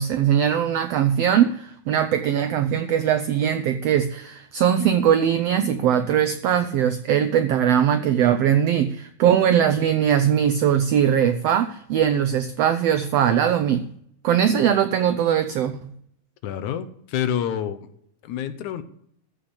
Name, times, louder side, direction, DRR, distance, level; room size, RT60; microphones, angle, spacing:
voice 1, 0.0-13.9 14.2-15.9, right 9 dB, 85° right, 10 dB, 1.4 m, -20 dB
voice 2, 16.4-17.9 18.2-18.8, left 9 dB, 75° left, 11 dB, 2.2 m, -28 dB
14.5 x 5.3 x 8.5 m, 0.68 s
omnidirectional pair, 3.6 m